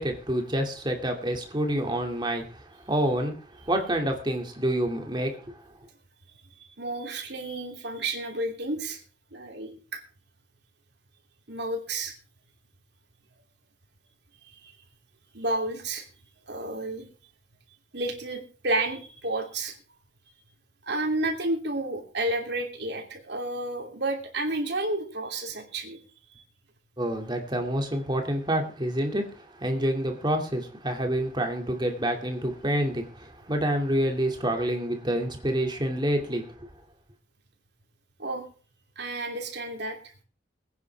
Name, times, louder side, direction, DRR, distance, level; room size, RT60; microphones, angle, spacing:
voice 1, 0.0-3.3 3.7-5.6 27.0-36.7, right 1 dB, 25° right, 2.4 m, -28 dB
voice 2, 6.6-9.0 9.3-10.0 11.5-12.1 14.4-14.7 15.3-16.1 16.5-17.1 17.9-19.8 20.8-26.0 26.3-26.4 38.2-38.5 39.0-40.0, right 2 dB, 60° right, 2.9 m, -31 dB
22.0 x 9.7 x 3.5 m
head